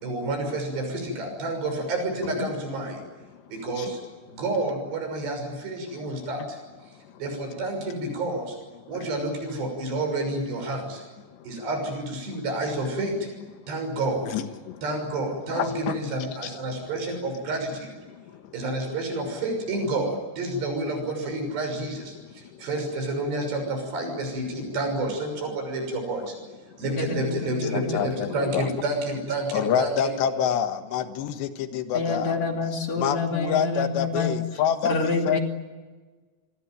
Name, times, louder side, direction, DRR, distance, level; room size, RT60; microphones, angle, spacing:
voice 1, 0.0-3.0 3.5-4.0 4.3-6.6 7.2-8.6 8.9-11.0 11.4-13.3 13.7-14.3 14.8-18.0 18.5-26.3 26.8-30.1, right 2 dB, 80° right, 4 dB, 8.4 m, -29 dB
voice 2, 14.3-14.8 15.5-16.0 16.4-16.5 18.1-18.5 22.5-22.7 26.7-26.8 27.7-28.7 29.5-32.4 33.0-35.4, left 8 dB, 90° left, 8 dB, 3.6 m, -27 dB
voice 3, 26.8-28.0 31.9-34.4 34.8-35.4, left 3 dB, 45° left, 3 dB, 3.7 m, -27 dB
28.0 x 21.5 x 9.2 m, 1.3 s
omnidirectional pair, 4.8 m